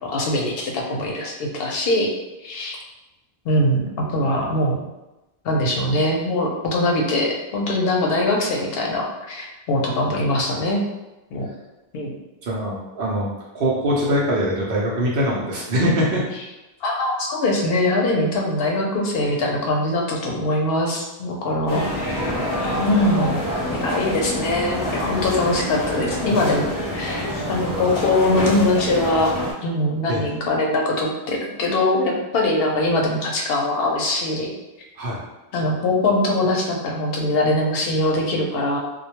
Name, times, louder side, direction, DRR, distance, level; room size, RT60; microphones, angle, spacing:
voice 1, 0.0-2.1 2.4-2.8 3.5-4.8 5.4-10.8 11.3-11.5 11.9-12.1 16.8-22.2 22.8-23.4 23.8-29.3 29.6-34.5 35.5-38.8, left 1 dB, 70° left, 0 dB, 0.8 m, -22 dB
voice 2, 12.4-13.3 13.5-16.2 30.1-30.3 35.0-35.2, equal, 65° right, -4 dB, 0.7 m, -22 dB
sound 1, 21.7-29.5, equal, 25° left, 0.5 m, -26 dB
2.2 x 2.1 x 2.8 m, 1.0 s
omnidirectional pair, 1.0 m